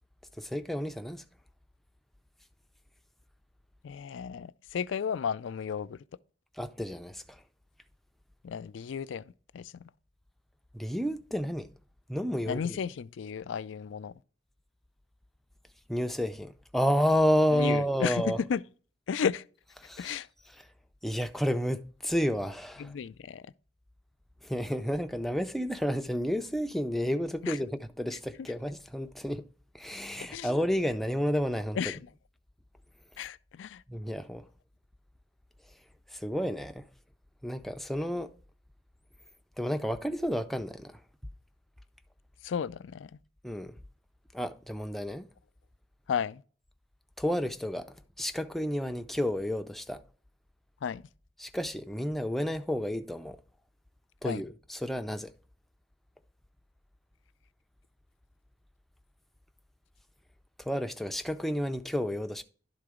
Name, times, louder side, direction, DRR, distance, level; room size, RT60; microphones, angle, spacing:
voice 1, 0.4-1.2 6.6-7.4 10.7-11.7 12.1-12.8 15.9-18.4 19.8-20.2 21.0-22.9 24.4-29.4 29.7-31.8 33.9-34.4 36.1-36.8 37.4-38.3 39.6-41.0 43.4-43.8 44.3-45.3 47.2-50.0 51.4-53.4 54.2-55.3 60.6-62.4, equal, ahead, 0.5 m, -31 dB
voice 2, 3.8-6.0 8.4-9.9 12.5-14.1 17.5-18.6 19.1-19.4 20.0-20.3 22.8-23.5 27.4-27.6 30.3-30.5 31.8-32.1 33.2-33.8 42.4-43.2 46.1-46.4 50.8-51.0 54.2-54.4, left 7 dB, 75° left, 0.4 m, -33 dB
11.5 x 3.8 x 4.9 m
head